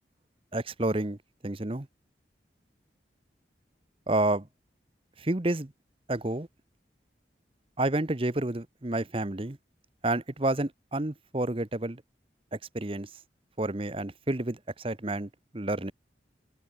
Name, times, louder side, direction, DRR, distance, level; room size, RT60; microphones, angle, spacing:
voice 1, 0.5-1.2 1.4-1.9 4.1-4.5 5.2-5.7 6.1-6.5 7.8-9.6 10.0-12.0 12.5-13.1 13.6-15.9, right 2 dB, 30° right, 1.0 m, -30 dB
head